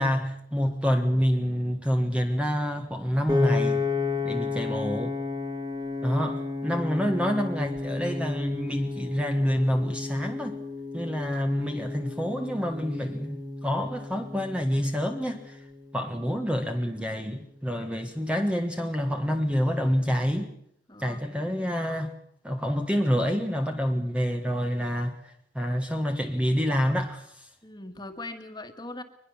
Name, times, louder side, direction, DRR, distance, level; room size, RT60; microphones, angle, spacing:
voice 1, 0.0-3.8 4.2-5.1 6.0-10.6 10.9-15.6 15.9-20.5 21.0-22.1 22.4-27.5, equal, 5° right, 1.4 m, -27 dB
Piano, 3.3-15.5, left 3 dB, 20° right, 2.7 m, -32 dB
voice 2, 20.9-21.7 27.6-29.0, left 2 dB, 20° left, 2.0 m, -41 dB
23.0 x 21.0 x 7.2 m
head